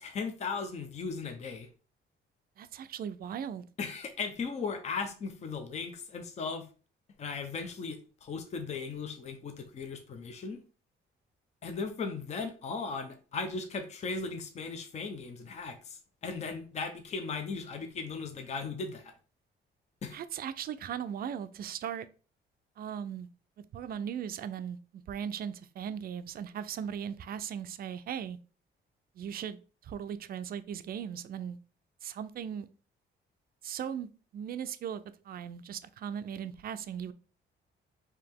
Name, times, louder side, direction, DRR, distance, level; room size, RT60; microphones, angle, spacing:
voice 1, 0.0-1.7 3.8-6.7 7.2-10.6 11.6-19.1 20.0-20.2, left 4 dB, 35° left, 0.6 m, -37 dB
voice 2, 2.6-3.6 20.1-22.1 22.8-23.3 23.7-28.4 29.1-31.6 32.0-32.7 33.6-37.1, right 8 dB, 50° right, 0.4 m, -38 dB
4.8 x 2.8 x 3.5 m
cardioid pair, 140°, 20 cm